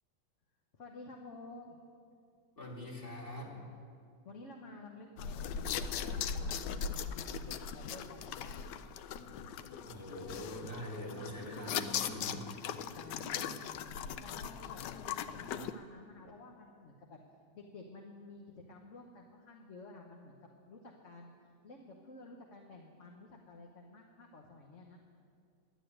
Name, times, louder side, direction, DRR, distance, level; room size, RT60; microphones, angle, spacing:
voice 1, 0.7-1.8 4.2-8.7 12.9-13.7 14.2-17.2 17.5-18.4 18.7-20.4 20.7-21.3 21.6-25.0, left 2 dB, 50° left, 1 dB, 1.3 m, -52 dB
voice 2, 2.6-3.6 9.8-12.5, equal, 30° left, -3 dB, 2.6 m, -43 dB
sound 1, 5.2-15.7, left 7 dB, 80° left, 1.2 m, -39 dB
12.0 x 8.3 x 10.0 m, 2.3 s
omnidirectional pair, 1.9 m